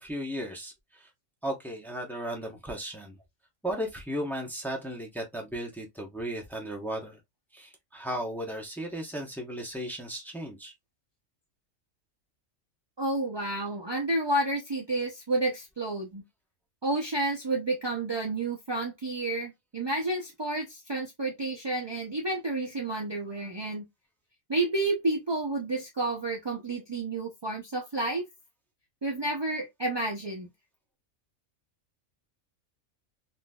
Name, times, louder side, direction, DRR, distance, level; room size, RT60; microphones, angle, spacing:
voice 1, 0.0-1.1 1.4-3.2 3.6-7.2 7.5-10.7, equal, ahead, 0.7 m, -35 dB
voice 2, 13.0-16.2 16.8-23.9 24.5-28.2 29.0-30.5, right 2 dB, 45° right, 0.3 m, -30 dB
3.9 x 2.5 x 2.2 m
omnidirectional pair, 1.4 m